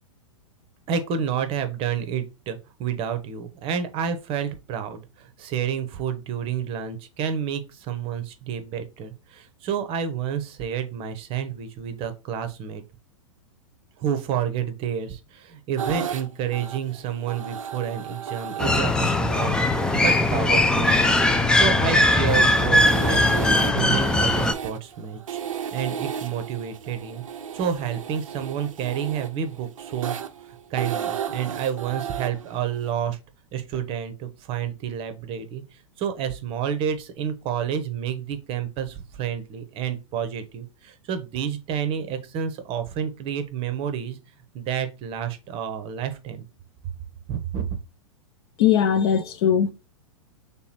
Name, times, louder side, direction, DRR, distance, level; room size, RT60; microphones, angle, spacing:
voice 1, 0.9-12.8 14.0-19.6 19.9-25.4 25.7-27.2 27.5-30.2 30.7-33.2 33.5-44.2 44.5-46.4 47.3-47.8, right 8 dB, 35° right, 0.7 m, -29 dB
sound 1, 15.8-32.9, right 8 dB, 80° right, 0.5 m, -34 dB
sound 2, 18.6-24.5, left 2 dB, 5° left, 0.3 m, -20 dB
voice 2, 48.6-49.7, left 8 dB, 50° left, 0.6 m, -20 dB
3.4 x 2.9 x 4.2 m
hypercardioid pair, 105°, 17 cm